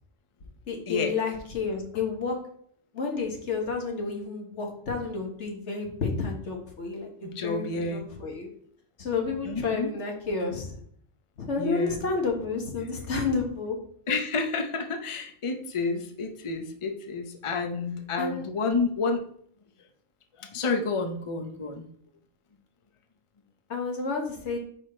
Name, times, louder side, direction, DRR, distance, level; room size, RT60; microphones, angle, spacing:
voice 1, 0.7-2.4 2.9-7.6 7.9-8.5 9.0-10.8 11.4-13.8 18.2-18.5 23.7-24.6, left 4 dB, 90° left, 1 dB, 1.7 m, -30 dB
voice 2, 7.2-8.2 9.5-9.9 11.6-12.0 14.1-19.2 20.4-21.8, left 4 dB, 30° left, 5 dB, 0.7 m, -30 dB
5.7 x 5.0 x 4.4 m, 0.62 s
omnidirectional pair, 1.2 m